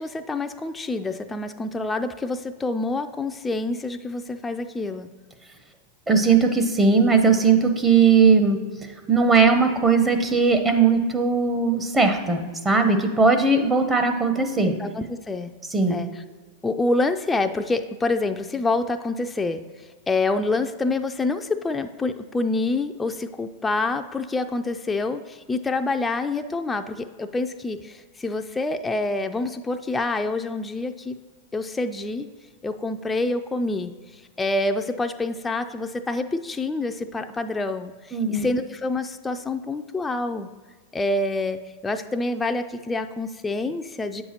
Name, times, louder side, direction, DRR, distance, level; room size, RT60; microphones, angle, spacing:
voice 1, 0.0-5.1 14.6-15.5 15.9-16.1 16.6-31.1 31.5-32.3 32.6-40.5 40.9-44.2, left 2 dB, 15° left, 7 dB, 0.3 m, -27 dB
voice 2, 6.1-14.7 15.7-16.0 38.1-38.5, right 4 dB, 20° right, 6 dB, 0.7 m, -19 dB
8.1 x 5.5 x 2.9 m, 1.5 s
hypercardioid pair, 105°, 0 cm